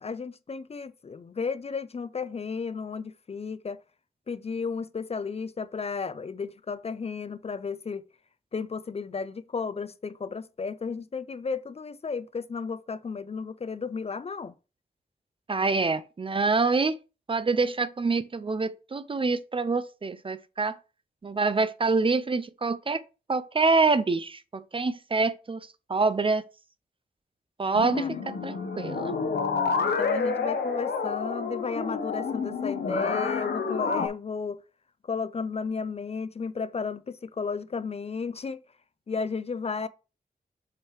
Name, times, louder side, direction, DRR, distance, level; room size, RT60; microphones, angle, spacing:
voice 1, 0.0-3.8 4.3-8.0 8.5-14.5 27.9-28.2 29.8-34.6 35.1-38.6 39.1-39.9, left 5 dB, 40° left, 0.4 m, -33 dB
voice 2, 15.5-17.0 17.3-20.8 21.2-23.0 23.3-26.4 27.6-29.2, right 3 dB, 30° right, 0.4 m, -26 dB
sound 1, 27.7-34.1, left 5 dB, 85° left, 0.9 m, -29 dB
7.2 x 4.8 x 3.1 m
wide cardioid pair, 135°, 17 cm